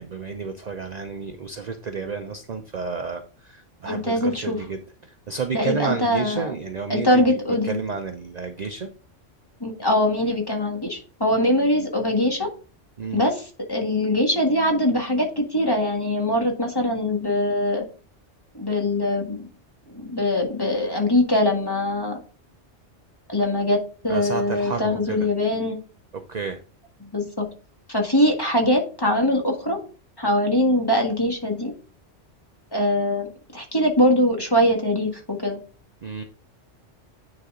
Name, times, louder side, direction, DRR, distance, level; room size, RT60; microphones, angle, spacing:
voice 1, 0.0-8.9 13.0-13.2 24.1-25.2 26.1-26.6 36.0-36.2, right 5 dB, 45° right, 6 dB, 0.7 m, -31 dB
voice 2, 3.8-4.6 5.5-6.5 6.9-7.8 9.6-12.5 13.1-17.8 18.5-19.5 19.9-22.2 23.3-25.8 27.0-27.5 27.9-29.8 30.2-31.7 32.7-33.3 33.5-35.6, left 1 dB, 20° left, 1 dB, 1.6 m, -22 dB
9.7 x 4.1 x 3.7 m, 0.36 s
omnidirectional pair, 1.3 m